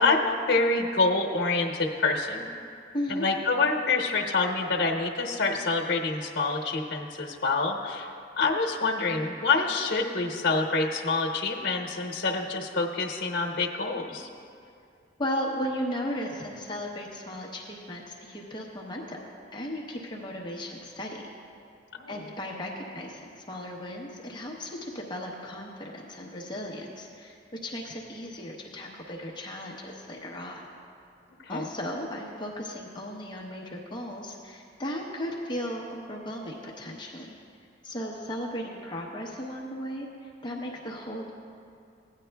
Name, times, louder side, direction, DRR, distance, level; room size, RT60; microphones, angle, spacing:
voice 1, 0.0-2.5 3.1-14.3 21.9-22.2 31.4-31.7, left 3 dB, 80° left, 1 dB, 0.9 m, -27 dB
voice 2, 2.9-3.2 15.2-19.2 19.5-21.2 22.1-30.6 31.5-37.3 37.8-41.3, equal, 25° left, -1 dB, 0.7 m, -36 dB
16.5 x 9.6 x 2.2 m, 2.4 s
head